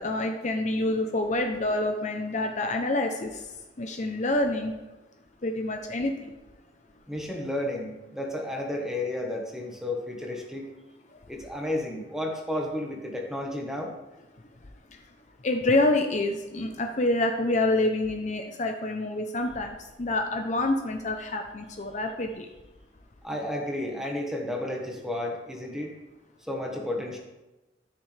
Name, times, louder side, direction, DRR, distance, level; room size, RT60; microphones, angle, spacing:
voice 1, 0.0-3.4 3.8-4.7 5.4-6.3 15.4-22.5, left 2 dB, 40° left, 4 dB, 0.7 m, -27 dB
voice 2, 7.1-10.7 11.3-13.9 23.2-25.9 26.5-27.2, left 1 dB, 5° right, 0 dB, 1.3 m, -32 dB
13.0 x 6.3 x 3.4 m, 1.1 s
head